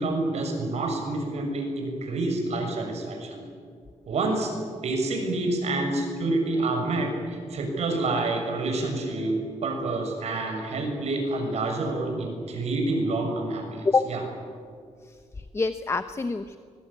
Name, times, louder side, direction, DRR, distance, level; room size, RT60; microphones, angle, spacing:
voice 1, 0.0-3.4 4.1-9.3 9.6-14.2, right 2 dB, 60° right, 2 dB, 6.7 m, -28 dB
voice 2, 15.0-16.6, left 4 dB, 20° left, 10 dB, 0.9 m, -26 dB
25.0 x 23.0 x 8.8 m, 2.1 s
wide cardioid pair, 160°, 12 cm